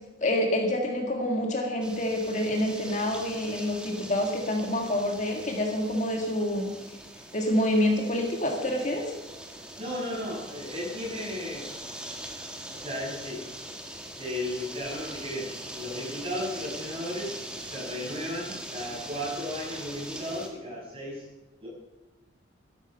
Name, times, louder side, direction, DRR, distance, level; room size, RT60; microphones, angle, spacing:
voice 1, 0.2-6.7 7.3-9.1, left 1 dB, 40° left, 3 dB, 1.8 m, -27 dB
sound 1, 1.8-20.5, right 1 dB, 5° right, 1.5 m, -42 dB
voice 2, 9.8-11.7 12.7-13.5 14.2-21.2 21.6-21.7, left 1 dB, 30° right, -4 dB, 6.5 m, -35 dB
13.0 x 13.0 x 5.7 m, 1.0 s
head